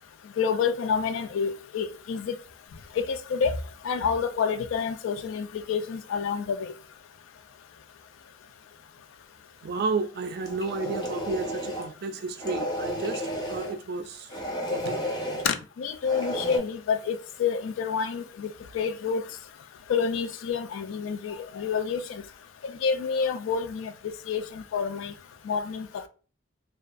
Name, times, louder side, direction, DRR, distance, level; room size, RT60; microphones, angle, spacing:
voice 1, 0.4-2.4 3.0-3.6 3.8-6.7 15.4-18.5 18.7-19.2 19.9-22.2 22.6-25.1 25.5-26.0, left 6 dB, 75° left, 0.3 m, -28 dB
voice 2, 9.6-14.4 14.7-15.0, right 3 dB, 50° right, 0.3 m, -32 dB
sound 1, 10.4-11.9 12.4-13.7 14.3-15.5 16.0-16.6, equal, 20° left, 0.5 m, -32 dB
2.6 x 2.3 x 2.4 m
head